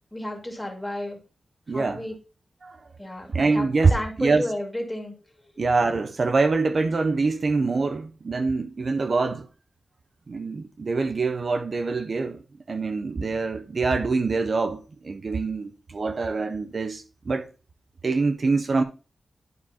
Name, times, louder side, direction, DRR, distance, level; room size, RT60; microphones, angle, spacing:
voice 1, 0.1-1.2 1.7-2.1 3.0-5.1, left 1 dB, 10° left, 2.1 m, -32 dB
voice 2, 1.7-2.0 2.6-2.8 3.3-3.9 4.2-4.4 5.6-9.5 10.3-12.4 12.7-17.5 18.0-18.8, right 4 dB, 50° right, 0.5 m, -24 dB
11.0 x 4.9 x 2.8 m
wide cardioid pair, 115°, 0 cm